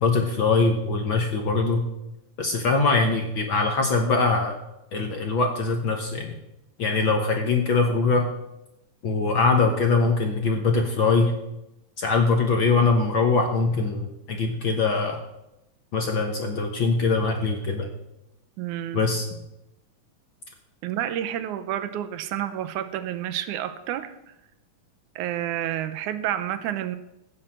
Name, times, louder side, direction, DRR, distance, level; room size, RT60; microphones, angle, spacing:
voice 1, 0.0-1.8 2.4-4.6 4.9-6.4 6.8-8.3 9.0-11.3 12.0-15.2 15.9-17.9 18.9-19.2, left 4 dB, 55° left, 3 dB, 1.5 m, -22 dB
voice 2, 18.6-19.0 20.8-24.3 25.2-27.0, right 11 dB, 80° right, 11 dB, 2.2 m, -29 dB
15.5 x 6.5 x 7.4 m, 0.88 s
omnidirectional pair, 3.5 m